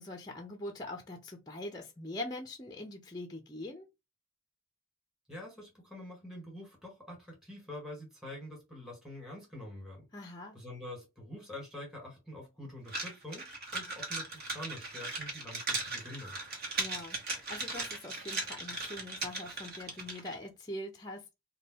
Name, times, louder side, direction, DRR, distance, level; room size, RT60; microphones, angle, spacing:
voice 1, 0.0-3.9 10.1-10.6 16.8-21.3, left 1 dB, 20° left, 0.5 m, -43 dB
voice 2, 5.3-10.0 10.5-16.3, left 1 dB, ahead, 1.6 m, -46 dB
sound 1, 12.9-20.4, right 3 dB, 45° right, 1.3 m, -38 dB
3.5 x 2.2 x 4.1 m
head